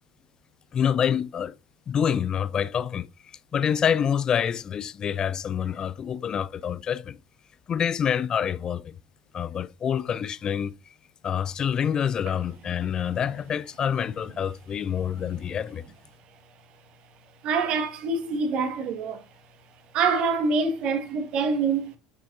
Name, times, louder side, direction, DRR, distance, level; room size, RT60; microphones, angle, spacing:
voice 1, 0.7-1.5 1.9-3.1 3.5-7.2 7.7-9.0 9.3-10.7 11.2-15.9, left 8 dB, 30° left, 0.5 m, -27 dB
voice 2, 17.4-19.2 19.9-21.9, right 4 dB, 45° right, 1.7 m, -25 dB
10.5 x 6.1 x 2.7 m
figure-of-eight pair, 70°, 2 cm